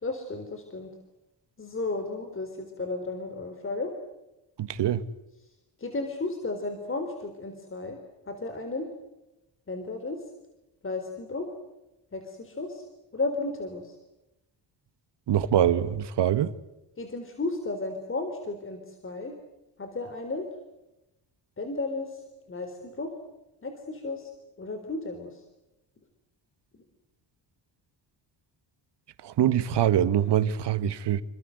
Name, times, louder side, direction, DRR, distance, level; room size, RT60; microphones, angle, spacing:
voice 1, 0.0-0.9 1.6-3.9 5.8-8.0 8.3-8.9 9.7-10.2 10.8-11.5 12.1-12.8 13.1-14.0 17.0-19.3 19.8-20.4 21.6-22.2 22.5-23.1 23.6-24.3 24.6-25.4, left 3 dB, 30° left, 4.1 m, -33 dB
voice 2, 4.6-5.0 15.3-16.5 29.2-31.2, right 10 dB, 70° right, 1.7 m, -24 dB
28.5 x 26.0 x 8.0 m
cardioid pair, 135°, 44 cm